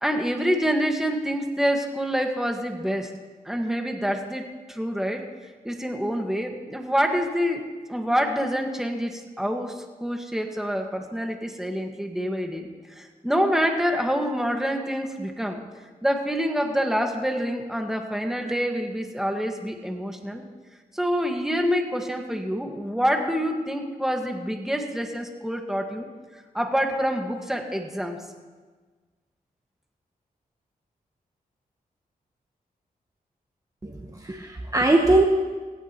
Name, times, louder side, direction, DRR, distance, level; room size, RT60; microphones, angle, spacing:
voice 1, 0.0-3.1 3.5-5.2 5.6-15.6 16.0-20.4 20.9-26.1 26.5-28.2, equal, 5° right, 3 dB, 1.7 m, -26 dB
voice 2, 33.8-35.2, right 2 dB, 25° right, 2 dB, 1.2 m, -21 dB
17.0 x 16.5 x 3.0 m, 1.4 s
cardioid pair, 80°, 15 cm